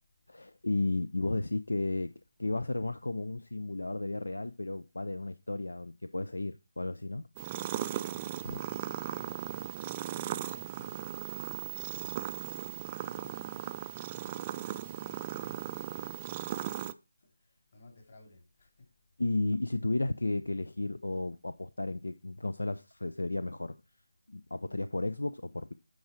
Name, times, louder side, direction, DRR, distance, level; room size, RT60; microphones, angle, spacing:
voice 1, 0.3-2.1 2.4-7.3 8.4-8.6 19.2-23.8 24.3-25.7, left 2 dB, 80° left, 0.5 m, -33 dB
sound 1, 7.4-16.9, right 12 dB, 20° right, 0.3 m, -37 dB
voice 2, 8.4-12.4 13.0-14.1 14.6-16.0 16.5-16.9 17.2-18.7, left 2 dB, 45° left, 3.1 m, -60 dB
9.4 x 4.9 x 4.4 m
figure-of-eight pair, 160°, 0 cm